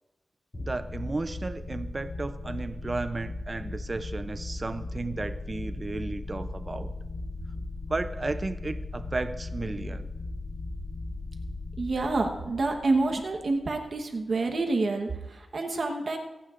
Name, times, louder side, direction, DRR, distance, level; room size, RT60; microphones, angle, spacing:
sound 1, 0.5-13.9, left 2 dB, 25° left, 2.5 m, -37 dB
voice 1, 0.6-6.9 7.9-10.1, right 3 dB, 25° right, 11 dB, 0.5 m, -34 dB
voice 2, 11.8-16.2, right 3 dB, 45° right, 3 dB, 1.1 m, -28 dB
26.5 x 9.4 x 2.5 m, 1.1 s
wide cardioid pair, 175°, 0 cm